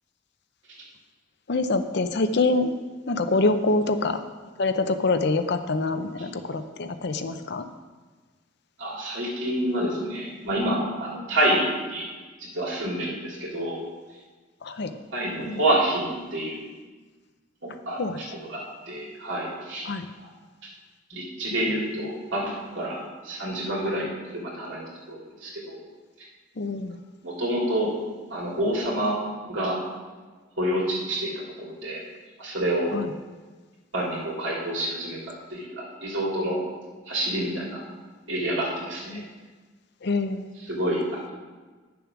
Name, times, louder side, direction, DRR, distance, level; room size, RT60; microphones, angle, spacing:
voice 1, 1.5-2.7 3.1-4.2 4.6-7.7 14.6-14.9 15.4-15.6 18.0-18.2 19.8-20.1 26.6-27.0 32.9-33.1 39.1-39.2 40.0-40.5, left 3 dB, 55° left, 9 dB, 0.6 m, -25 dB
voice 2, 8.8-12.1 12.5-13.8 15.1-16.7 17.6-19.9 20.2-20.3 21.1-24.8 25.1-25.8 27.2-27.9 28.3-29.2 29.5-29.8 30.6-32.0 32.4-32.9 33.9-35.2 35.5-36.6 37.1-37.8 38.3-39.2 40.7-41.3, right 1 dB, 70° right, -3 dB, 2.9 m, -28 dB
10.0 x 7.0 x 5.9 m, 1.3 s
head